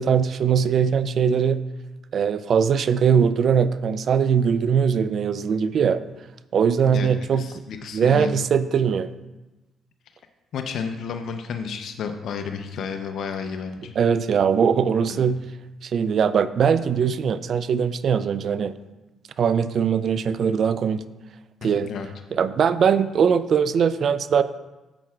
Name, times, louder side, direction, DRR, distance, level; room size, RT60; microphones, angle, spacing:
voice 1, 0.0-1.6 2.1-6.0 6.5-7.5 7.9-9.1 14.0-15.4 15.8-18.7 19.4-21.0 21.6-21.9 22.3-24.4, right 7 dB, 55° right, 14 dB, 0.4 m, -21 dB
voice 2, 6.9-8.3 10.5-13.9 15.1-15.2 21.6-22.1, left 6 dB, 70° left, 6 dB, 0.6 m, -32 dB
9.9 x 7.4 x 2.4 m, 1.1 s
cardioid pair, 90°, 0 cm